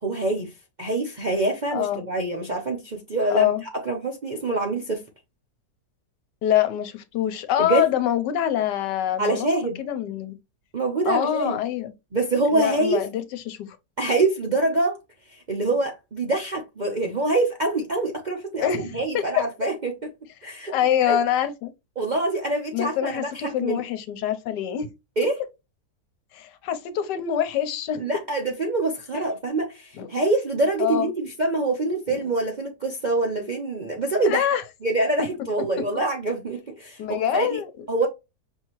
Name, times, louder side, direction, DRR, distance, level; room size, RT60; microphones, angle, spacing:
voice 1, 0.0-0.5 0.8-5.0 7.6-7.8 9.2-9.8 10.7-11.6 12.1-13.0 14.0-15.0 15.3-20.1 20.4-20.7 21.0-21.2 22.0-23.8 25.2-25.4 28.0-34.4 34.8-37.6 37.9-38.1, right 2 dB, 50° right, 0.5 m, -25 dB
voice 2, 1.7-2.0 3.3-3.6 6.4-9.5 9.8-10.3 11.1-11.9 12.5-13.8 18.6-19.2 20.7-21.7 22.7-24.9 26.3-28.0 29.1-29.2 30.0-30.1 30.8-31.1 34.2-34.6 35.2-35.3 37.0-37.7, left 10 dB, 85° left, 1.3 m, -25 dB
5.5 x 2.7 x 3.0 m
omnidirectional pair, 1.8 m